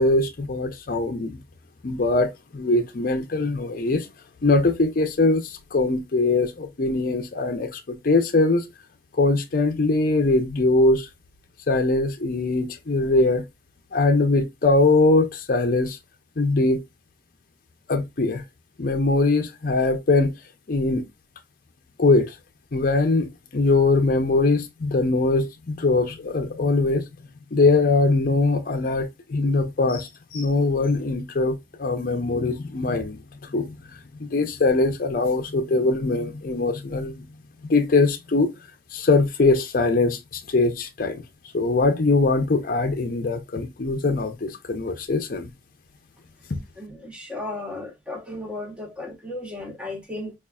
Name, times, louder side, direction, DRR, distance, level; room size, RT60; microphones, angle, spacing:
voice 1, 0.0-1.4 1.8-4.1 4.4-8.7 9.1-11.1 11.7-13.4 13.9-16.0 16.4-16.8 17.9-18.4 18.8-20.3 20.7-21.1 22.0-22.3 22.7-27.0 27.5-33.2 33.5-33.8 34.2-37.2 37.6-38.5 38.9-41.2 41.5-45.5, left 3 dB, 50° left, 0.5 m, -22 dB
voice 2, 46.8-50.3, left 2 dB, 5° right, 1.0 m, -35 dB
5.2 x 2.4 x 2.3 m
head